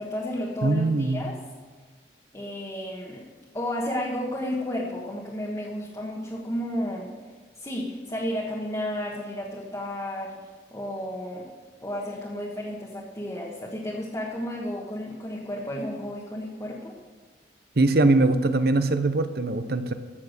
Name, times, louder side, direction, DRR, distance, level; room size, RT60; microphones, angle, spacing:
voice 1, 0.0-1.4 2.3-3.3 3.5-7.1 7.6-10.3 10.7-11.5 11.8-16.9, left 1 dB, 20° left, -4 dB, 1.4 m, -32 dB
voice 2, 0.6-1.2 17.8-19.9, right 2 dB, 55° right, 10 dB, 0.8 m, -22 dB
14.0 x 7.1 x 6.6 m, 1.4 s
head